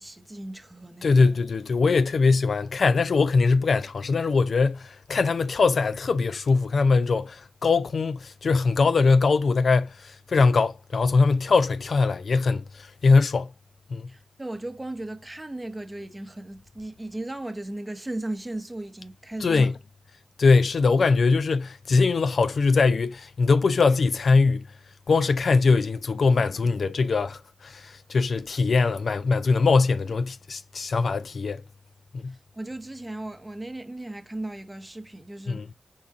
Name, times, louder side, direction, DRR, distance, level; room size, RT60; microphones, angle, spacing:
voice 1, 0.0-1.3 14.1-19.7 32.2-35.7, right 1 dB, 20° right, 0.9 m, -36 dB
voice 2, 1.0-13.5 13.9-14.1 19.4-19.7 20.4-24.7 25.1-31.6 32.1-32.3 35.5-35.7, left 4 dB, 70° left, 0.4 m, -22 dB
5.6 x 2.4 x 3.5 m
cardioid pair, 60°, 0 cm